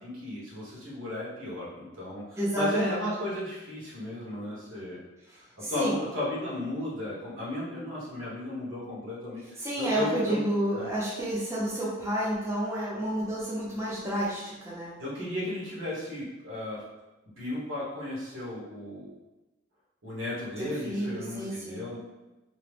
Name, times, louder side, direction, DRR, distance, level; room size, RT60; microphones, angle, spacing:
voice 1, 0.0-5.0 5.4-10.4 10.7-10.9 15.0-16.8 17.4-19.1 20.0-22.0, left 1 dB, 85° right, -6 dB, 1.2 m, -35 dB
voice 2, 2.4-3.1 5.3-6.0 9.6-14.9 20.6-21.9, right 1 dB, 15° right, -7 dB, 0.5 m, -30 dB
2.9 x 2.1 x 3.2 m, 1.1 s
head